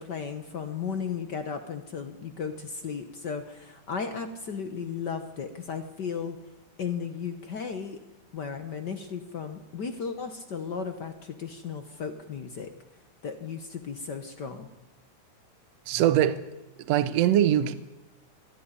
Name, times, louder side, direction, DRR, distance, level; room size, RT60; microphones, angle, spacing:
voice 1, 0.0-6.4 6.8-8.0 8.3-12.7 13.2-14.7, left 6 dB, 65° left, 1.0 m, -35 dB
voice 2, 15.9-16.4 16.8-17.7, right 11 dB, 65° right, 1.9 m, -22 dB
21.0 x 13.0 x 9.7 m
omnidirectional pair, 3.6 m